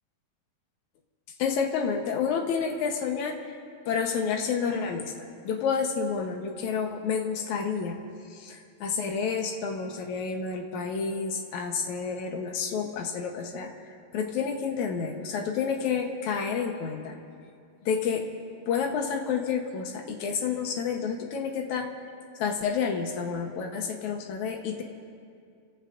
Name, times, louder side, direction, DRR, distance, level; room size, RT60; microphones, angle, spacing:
voice 1, 1.4-3.4 3.9-8.0 8.3-13.7 14.1-17.2 17.9-18.3 18.7-21.9 22.4-24.8, left 6 dB, 80° left, 2 dB, 1.7 m, -29 dB
30.0 x 16.0 x 2.5 m, 2.3 s
omnidirectional pair, 4.8 m